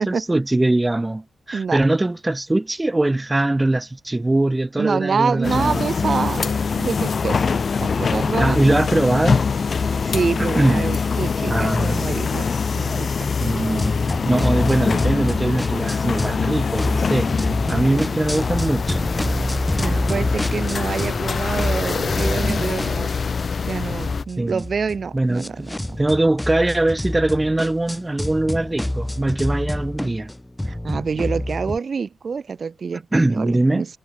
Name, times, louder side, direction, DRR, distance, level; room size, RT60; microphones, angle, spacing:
voice 1, 0.0-6.1 8.4-9.4 10.4-10.9 11.5-12.0 13.4-13.9 14.2-19.1 22.4-22.6 24.4-24.6 25.1-25.7 26.0-30.3 33.1-33.9, right 2 dB, 15° right, 0.8 m, -21 dB
voice 2, 4.8-8.7 10.0-13.3 19.8-23.1 23.7-25.7 30.0-30.2 30.7-33.9, right 5 dB, 45° right, 1.5 m, -27 dB
sound 1, 5.4-24.2, left 5 dB, 45° left, 0.7 m, -23 dB
sound 2, 13.8-16.4 16.8-21.3 21.6-31.8, left 1 dB, 5° left, 2.2 m, -28 dB
wide cardioid pair, 140°, 0 cm